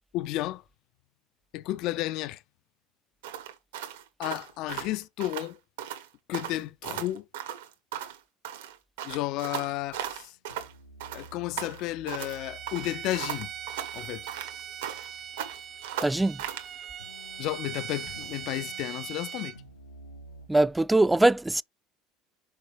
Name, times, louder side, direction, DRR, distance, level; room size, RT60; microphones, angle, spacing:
voice 1, 0.1-0.6 1.5-2.4 4.2-5.6 6.3-7.2 9.0-10.3 11.1-13.5 13.9-14.2 17.4-19.5, left 16 dB, 60° left, 0.5 m, -32 dB
sound 1, 3.2-5.5 5.8-6.1 6.3-8.2 8.4-10.7 11.0-12.4 12.7-15.1 15.4-16.7, right 10 dB, 75° right, 1.7 m, -37 dB
sound 2, 10.2-10.3 10.5-16.7 17.0-20.5, right 1 dB, 85° left, 0.9 m, -52 dB
Bowed string instrument, 12.2-19.6, right 9 dB, 45° right, 0.8 m, -41 dB
voice 2, 16.0-16.4 20.5-21.6, right 2 dB, 10° right, 0.3 m, -22 dB
6.6 x 5.3 x 3.2 m
hypercardioid pair, 65°, 0 cm